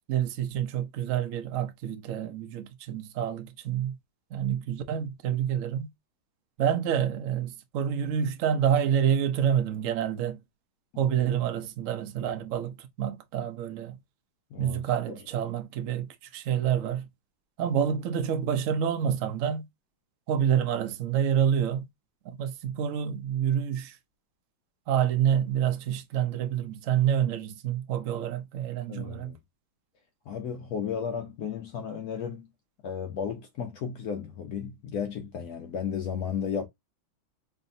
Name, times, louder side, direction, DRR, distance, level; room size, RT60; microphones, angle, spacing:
voice 1, 0.1-4.0 4.3-5.9 6.6-10.4 11.0-14.0 14.6-17.1 17.6-19.7 20.3-21.9 22.4-24.0 24.9-29.3, right 9 dB, 80° right, 0.7 m, -28 dB
voice 2, 28.9-29.4 30.3-32.5 32.8-36.7, left 7 dB, 75° left, 0.8 m, -34 dB
4.7 x 2.7 x 2.6 m
omnidirectional pair, 2.2 m